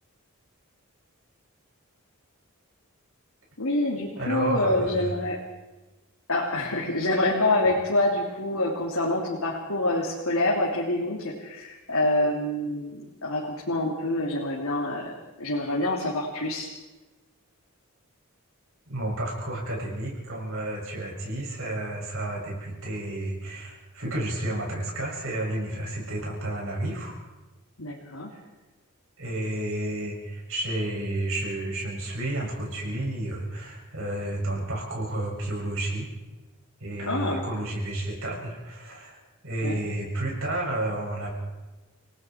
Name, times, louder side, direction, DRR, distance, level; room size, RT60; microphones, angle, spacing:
voice 1, 3.6-5.4 6.3-15.1 15.4-16.7 27.8-28.3 37.1-37.4 39.6-39.8, left 2 dB, 80° left, -3 dB, 3.2 m, -26 dB
voice 2, 4.2-5.1 18.9-27.2 28.3-28.4 29.2-36.1 36.8-41.3, right 1 dB, 70° right, -2 dB, 7.3 m, -31 dB
30.0 x 19.5 x 4.7 m, 1.1 s
head